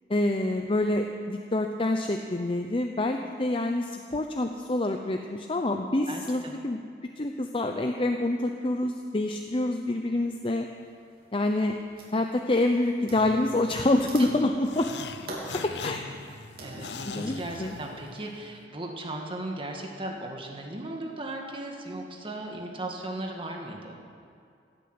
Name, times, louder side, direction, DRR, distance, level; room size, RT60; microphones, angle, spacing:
voice 1, 0.1-6.8 7.2-10.7 11.3-11.8 12.1-15.0 15.5-16.1 17.1-17.7, left 2 dB, 30° left, 4 dB, 0.7 m, -27 dB
voice 2, 6.1-6.5 15.3-16.3 16.6-24.0, right 1 dB, 30° right, 1 dB, 1.7 m, -37 dB
sound 1, 10.1-10.2 10.8-11.3 11.6-12.3 13.0-17.9, right 1 dB, 60° right, 3.3 m, -44 dB
sound 2, 14.6-18.3, left 5 dB, 75° left, 0.7 m, -41 dB
17.0 x 8.4 x 8.1 m, 2.3 s
head